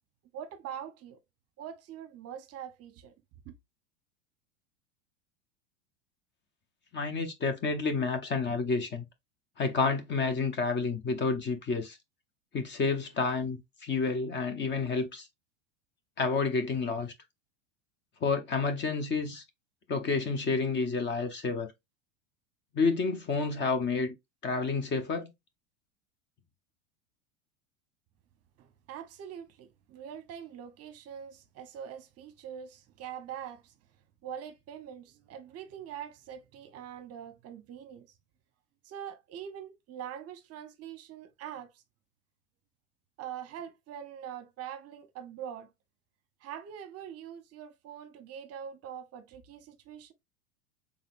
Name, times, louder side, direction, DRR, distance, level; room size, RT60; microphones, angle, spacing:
voice 1, 0.3-1.2 1.6-3.1 3.4-3.5 28.6-33.7 34.2-38.1 38.8-41.8 43.2-45.7 46.4-50.1, right 9 dB, 40° right, 0.9 m, -43 dB
voice 2, 6.9-9.0 9.6-12.0 12.5-15.3 16.2-17.1 18.2-19.4 19.9-21.7 22.7-24.1 24.4-25.3, left 4 dB, 30° left, 1.0 m, -29 dB
4.0 x 3.6 x 2.5 m
hypercardioid pair, 100°, 39 cm